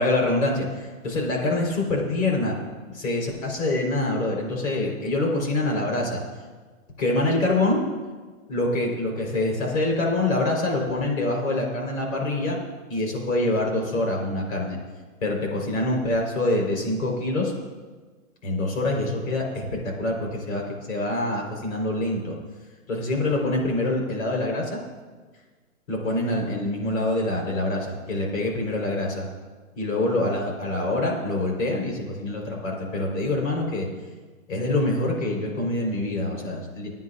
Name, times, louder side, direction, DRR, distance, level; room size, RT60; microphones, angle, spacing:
voice 1, 0.0-2.5 2.9-6.2 7.0-7.8 8.5-12.6 12.9-14.8 15.2-17.5 18.4-22.4 22.9-24.8 25.9-29.3 29.8-33.9 34.5-36.9, left 2 dB, 65° left, 0 dB, 4.4 m, -25 dB
27.5 x 9.4 x 2.5 m, 1.4 s
hypercardioid pair, 150°, 42 cm